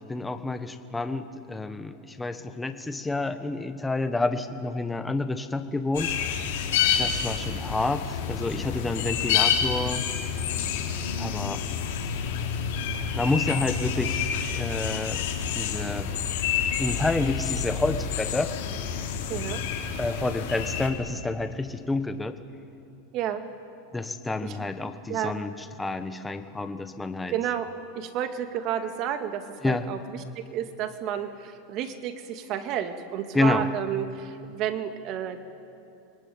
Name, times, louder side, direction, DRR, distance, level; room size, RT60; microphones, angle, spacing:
voice 1, 0.1-6.1 7.0-10.1 11.2-11.6 12.3-12.4 13.1-14.2 14.5-15.2 15.5-16.1 16.8-18.5 20.0-22.4 23.9-27.3 29.6-29.8 33.3-33.7, left 2 dB, 5° left, 9 dB, 1.2 m, -29 dB
sound 1, 5.9-20.9, left 7 dB, 75° left, 4.2 m, -28 dB
voice 2, 19.3-19.6 23.1-23.4 24.4-24.6 25.1-25.4 27.3-27.7 28.0-35.5, right 9 dB, 40° right, 8 dB, 2.1 m, -31 dB
25.0 x 20.0 x 9.5 m, 2.7 s
supercardioid pair, 150°, 0 cm